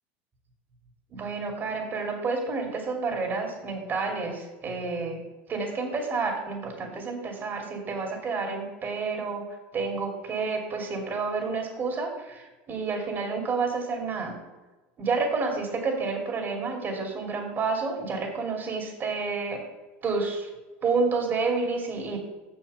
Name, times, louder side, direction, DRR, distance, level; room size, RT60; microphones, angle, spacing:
voice 1, 1.1-5.2 5.5-9.4 9.7-14.3 15.0-19.6 20.0-20.5 20.8-22.2, right 4 dB, 35° right, 2 dB, 2.6 m, -29 dB
6.6 x 5.8 x 6.6 m, 1.2 s
supercardioid pair, 100°, 6 cm